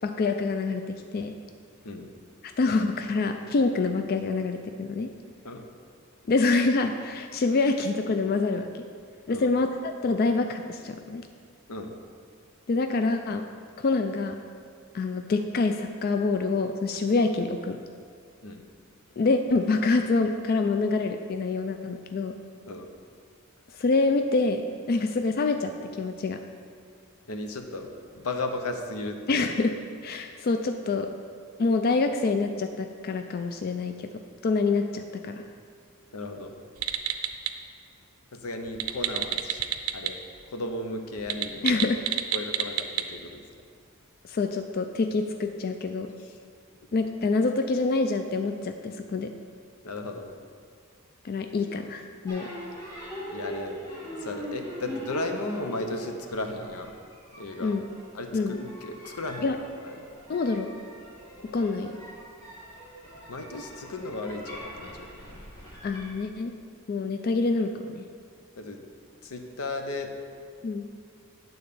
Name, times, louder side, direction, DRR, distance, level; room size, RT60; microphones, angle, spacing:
voice 1, 0.0-1.3 2.4-5.1 6.3-8.9 9.3-11.3 12.7-13.5 13.8-14.4 14.9-17.8 19.2-22.4 23.7-26.4 29.3-31.1 31.6-35.5 41.6-42.1 44.2-46.1 46.9-49.3 51.2-52.5 57.6-57.9 58.3-58.6 59.4-59.6 60.3-60.7 61.4-62.0 65.8-66.6 66.9-68.1 70.6-70.9, left 3 dB, 45° left, 6 dB, 0.3 m, -26 dB
voice 2, 27.3-29.2 36.1-36.5 38.4-39.6 39.9-40.2 40.5-41.7 42.3-43.4 49.8-50.3 53.3-53.8 54.2-56.9 57.4-57.7 58.1-59.5 59.8-59.9 63.3-65.4 68.6-68.8 69.2-70.1, left 2 dB, 90° left, 5 dB, 0.8 m, -35 dB
sound 1, 36.8-37.5 38.7-40.1 40.4-40.5 41.2-43.0, right 11 dB, 70° right, 0.5 m, -29 dB
sound 2, 52.3-66.1, equal, 15° left, 2.0 m, -42 dB
8.8 x 4.0 x 6.7 m, 2.1 s
head